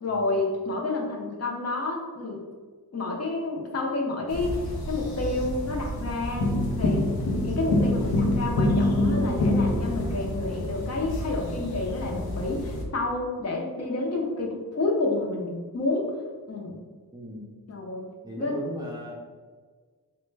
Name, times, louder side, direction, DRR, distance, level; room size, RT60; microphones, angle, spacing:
voice 1, 0.0-2.4 2.9-6.5 6.7-7.1 7.4-16.1 16.5-16.8 17.7-18.1 18.4-18.6, left 2 dB, 45° left, -2 dB, 0.6 m, -29 dB
sound 1, 4.3-12.8, left 1 dB, 90° left, 0.6 m, -27 dB
voice 2, 17.1-17.5 18.2-19.1, right 1 dB, 10° right, -3 dB, 0.4 m, -37 dB
3.2 x 2.2 x 3.2 m, 1.5 s
wide cardioid pair, 110°, 36 cm